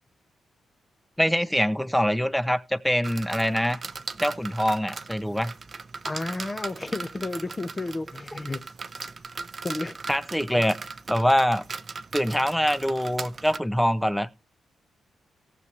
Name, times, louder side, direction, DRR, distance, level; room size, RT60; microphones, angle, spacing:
voice 1, 1.2-3.8 4.2-5.5 10.1-10.8 11.1-11.6 12.1-14.3, equal, ahead, 0.7 m, -24 dB
sound 1, 3.0-13.6, right 4 dB, 30° right, 0.7 m, -38 dB
voice 2, 6.0-8.6 9.6-10.0, left 2 dB, 20° left, 1.0 m, -32 dB
18.0 x 6.9 x 3.2 m
wide cardioid pair, 155°, 0 cm